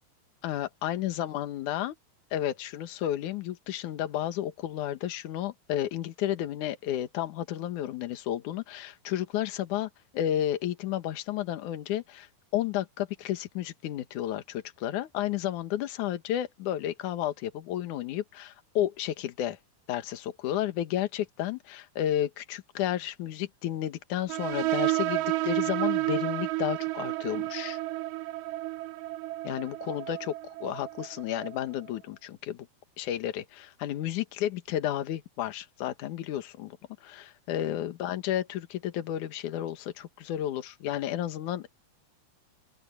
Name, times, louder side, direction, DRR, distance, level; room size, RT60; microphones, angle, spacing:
voice 1, 0.4-2.0 2.3-19.6 19.9-27.8 29.4-30.3 30.6-32.7 33.0-41.8, left 12 dB, 60° left, 2.5 m, -32 dB
sound 1, 24.3-31.6, right 19 dB, 80° right, 2.6 m, -31 dB
open air
omnidirectional pair, 4.6 m